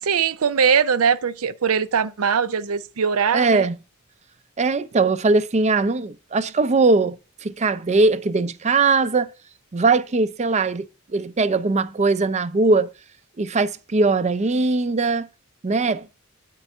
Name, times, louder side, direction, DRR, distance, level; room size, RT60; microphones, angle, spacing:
voice 1, 0.0-3.7, right 6 dB, 90° right, 0.6 m, -21 dB
voice 2, 3.3-3.8 4.6-9.3 9.7-10.9 11.1-12.9 13.4-15.3 15.6-16.1, right 3 dB, 30° right, 0.5 m, -20 dB
9.1 x 4.6 x 5.4 m
head